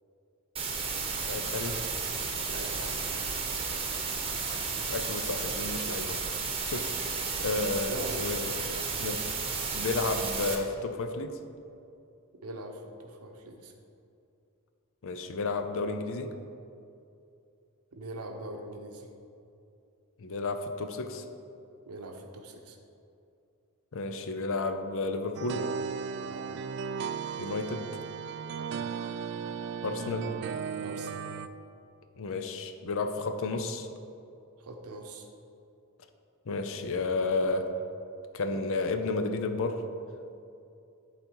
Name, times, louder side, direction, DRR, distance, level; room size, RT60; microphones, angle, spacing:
sound 1, 0.6-10.6, right 5 dB, 25° right, 0.9 m, -33 dB
voice 1, 1.2-1.8 4.9-8.5 9.0-9.2 9.7-11.4 15.0-16.3 20.2-21.2 23.9-25.6 27.4-27.9 29.8-30.3 32.2-33.9 36.5-37.7 38.3-39.8, left 3 dB, 65° left, 7 dB, 0.6 m, -32 dB
voice 2, 2.5-3.1 7.9-8.3 12.4-13.7 17.9-19.1 21.9-22.8 26.2-26.4 28.5-28.7 30.8-31.2 34.6-35.3, right 2 dB, 80° right, 3 dB, 0.8 m, -42 dB
sound 2, 25.3-31.5, right 6 dB, 50° right, 0.3 m, -36 dB
11.0 x 4.0 x 4.6 m, 2.6 s
head